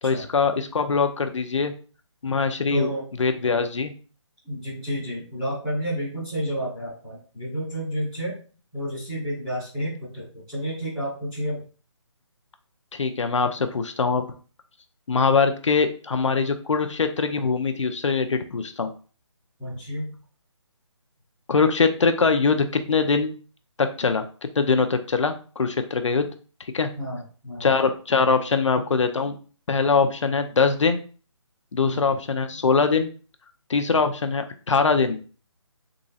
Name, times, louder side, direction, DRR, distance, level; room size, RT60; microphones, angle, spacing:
voice 1, 0.0-1.7 2.2-2.9 3.2-3.9 12.9-14.3 15.1-18.9 21.5-23.3 23.8-24.3 24.6-26.3 26.7-26.9 27.6-29.4 29.7-31.0 31.7-33.1 33.7-35.2, left 4 dB, 70° left, 7 dB, 0.6 m, -22 dB
voice 2, 2.7-3.0 4.4-8.4 8.7-11.6 19.6-20.1 27.0-27.8 31.8-32.0, equal, 5° right, -14 dB, 0.6 m, -30 dB
3.7 x 3.0 x 2.7 m, 0.39 s
hypercardioid pair, 180°, 16 cm